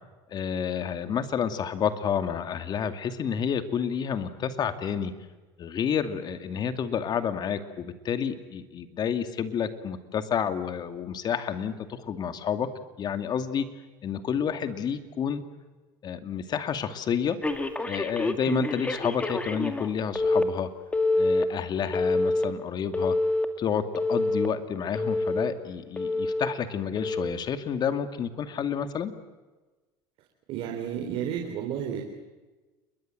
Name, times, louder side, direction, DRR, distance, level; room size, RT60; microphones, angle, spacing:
voice 1, 0.3-5.1 5.6-12.7 13.0-13.7 14.0-15.4 16.0-17.4 17.9-20.7 21.2-23.2 23.6-29.1, left 7 dB, 40° left, 8 dB, 2.5 m, -29 dB
Telephone, 17.4-19.9 20.2-20.4 20.9-21.4 21.9-22.4 22.9-23.5 23.9-24.5 25.0-25.5 26.0-26.5 27.0-27.3, left 2 dB, 10° left, 2.3 m, -26 dB
voice 2, 30.5-32.0, right 9 dB, 60° right, 3 dB, 4.1 m, -31 dB
29.5 x 22.0 x 7.8 m, 1.2 s
supercardioid pair, 120°, 11 cm